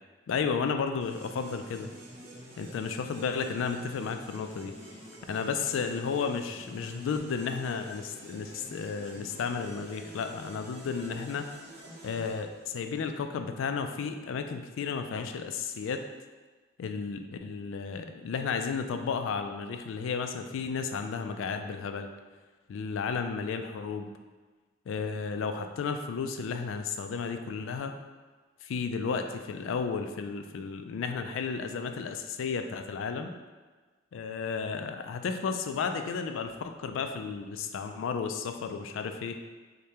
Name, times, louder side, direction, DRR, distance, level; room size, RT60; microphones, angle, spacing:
voice 1, 0.3-1.9 2.6-4.7 5.3-11.5 12.0-16.0 16.8-22.1 22.7-24.1 24.9-27.9 28.6-33.3 34.1-39.4, left 5 dB, 70° left, 7 dB, 0.3 m, -33 dB
sound 1, 1.0-13.1, right 1 dB, 35° right, 0.7 m, -48 dB
4.9 x 2.2 x 2.8 m, 1.4 s
head